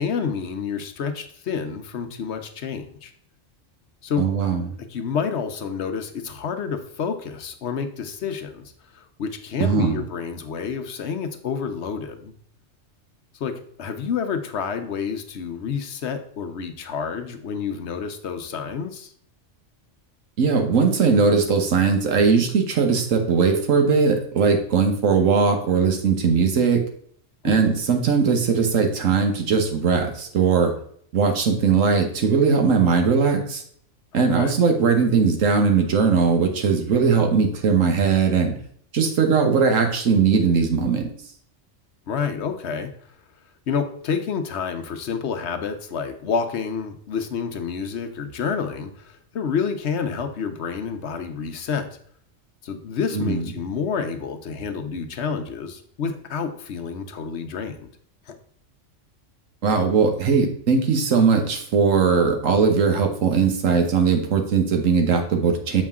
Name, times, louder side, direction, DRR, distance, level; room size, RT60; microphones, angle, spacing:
voice 1, 0.0-3.1 4.0-4.2 4.9-12.3 13.4-13.5 13.8-19.1 27.4-27.6 34.1-34.5 42.1-42.9 43.7-51.9 52.6-57.9 58.3-58.4, left 6 dB, 65° left, 7 dB, 1.0 m, -29 dB
voice 2, 4.2-4.6 9.6-10.0 20.4-26.8 27.4-30.7 31.1-33.6 34.1-38.5 38.9-41.1 53.1-53.4 59.6-65.8, right 5 dB, 90° right, 4 dB, 1.5 m, -19 dB
7.3 x 5.0 x 3.6 m, 0.62 s
omnidirectional pair, 1.3 m